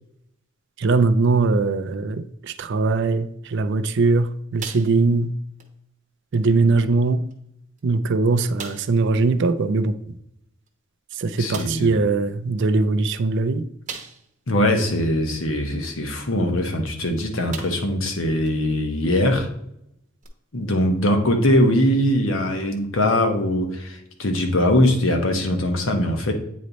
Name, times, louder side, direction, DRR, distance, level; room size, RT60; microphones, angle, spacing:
voice 1, 0.8-5.3 6.3-7.3 7.8-10.0 11.1-13.6, right 3 dB, 60° right, 0.5 m, -21 dB
sound 1, 4.6-5.3 5.6-5.8 6.3-6.4 7.3-7.4 7.8-7.9 8.6-9.0 10.7-10.8 11.5-11.9 13.9-14.4 14.9-15.0 16.9-17.0 17.5-18.0 18.5-18.6 20.2-20.3, right 5 dB, 35° right, 0.9 m, -38 dB
voice 2, 11.4-11.9 14.5-19.5 20.5-26.3, left 1 dB, 70° left, 1.1 m, -21 dB
8.6 x 3.2 x 4.0 m
head